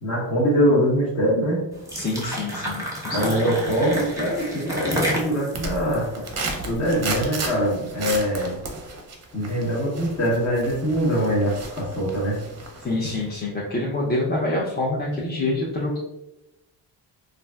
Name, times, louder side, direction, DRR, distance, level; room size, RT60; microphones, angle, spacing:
voice 1, 0.0-1.7 3.1-6.3 6.6-8.6 9.3-12.4, equal, 40° left, -6 dB, 0.8 m, -23 dB
sound 1, 1.7-7.0, equal, 5° right, 0.8 m, -30 dB
voice 2, 1.9-3.5 12.8-16.0, left 2 dB, 25° left, -4 dB, 0.4 m, -26 dB
sound 2, 3.5-4.7 5.0-12.9 13.3-13.4, right 3 dB, 35° right, 0.5 m, -34 dB
3.2 x 2.5 x 2.2 m, 0.92 s
cardioid pair, 115°, 43 cm